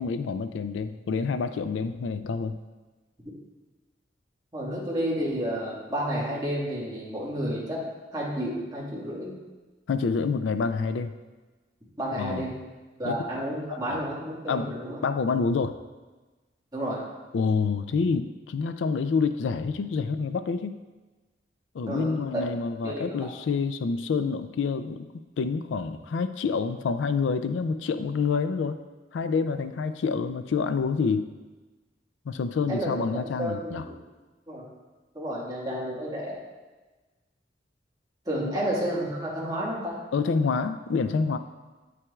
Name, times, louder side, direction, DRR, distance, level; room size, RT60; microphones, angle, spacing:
voice 1, 0.0-2.6 9.9-11.1 12.2-12.5 13.0-13.2 13.9-14.0 14.5-14.7 15.0-15.8 17.3-20.7 21.7-25.1 25.4-28.8 29.1-31.3 32.3-33.8 38.4-38.6 40.1-41.4, left 5 dB, 80° left, 10 dB, 0.4 m, -27 dB
voice 2, 4.5-7.8 8.1-9.4 12.0-12.5 13.0-15.0 16.7-17.0 21.9-22.2 22.8-23.3 32.7-34.0 34.5-34.7 35.1-36.3 38.2-40.0, equal, 20° right, -6 dB, 1.7 m, -31 dB
9.3 x 5.9 x 2.3 m, 1.2 s
head